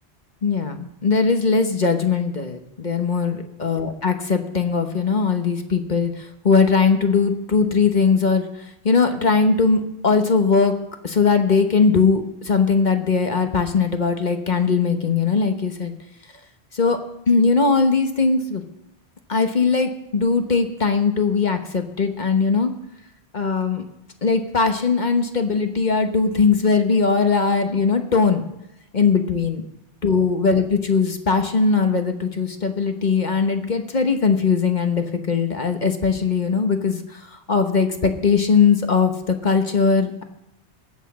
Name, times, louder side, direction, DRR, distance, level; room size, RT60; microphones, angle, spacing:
voice 1, 0.4-3.3 3.6-8.5 8.8-10.7 11.0-15.9 16.7-17.0 17.3-18.6 19.3-22.7 23.3-23.8 24.2-28.4 28.9-29.6 30.0-40.2, left 5 dB, 45° left, 6 dB, 1.2 m, -20 dB
20.0 x 8.3 x 4.2 m, 0.88 s
omnidirectional pair, 1.1 m